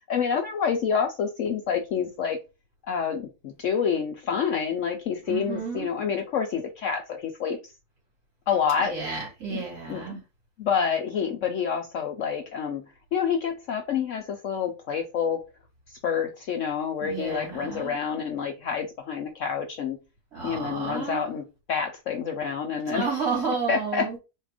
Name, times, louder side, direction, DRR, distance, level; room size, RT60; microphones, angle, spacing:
voice 1, 0.1-2.4 2.8-7.7 8.5-9.0 9.5-9.6 9.9-10.2 10.6-12.8 13.1-15.4 15.9-20.0 20.4-23.1 23.7-24.2, left 7 dB, 65° left, 0.8 m, -28 dB
voice 2, 5.3-5.9 8.8-10.2 17.0-17.9 20.3-21.2 22.9-24.2, right 5 dB, 75° right, 2.8 m, -31 dB
4.3 x 2.4 x 4.8 m
omnidirectional pair, 1.7 m